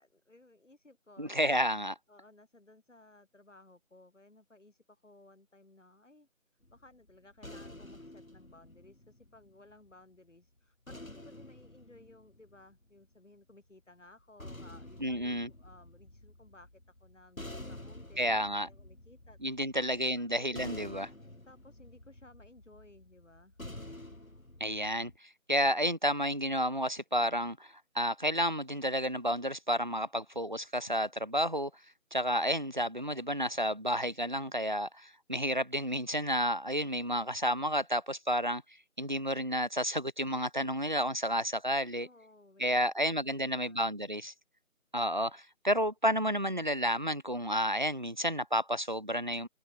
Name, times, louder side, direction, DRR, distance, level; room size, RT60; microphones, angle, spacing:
voice 1, 0.0-1.6 2.1-6.3 6.7-20.6 21.4-23.6 42.0-43.9, left 2 dB, 60° left, 5.0 m, -59 dB
voice 2, 1.2-1.9 15.0-15.5 18.2-18.7 19.4-21.1 24.6-25.1 25.5-31.7 32.1-38.6 39.0-42.1 42.6-44.3 44.9-49.5, equal, 35° right, 0.8 m, -31 dB
sound 1, 6.6-9.9 10.9-13.1 14.1-25.2, left 1 dB, 80° left, 6.7 m, -49 dB
figure-of-eight pair, 165°, 41 cm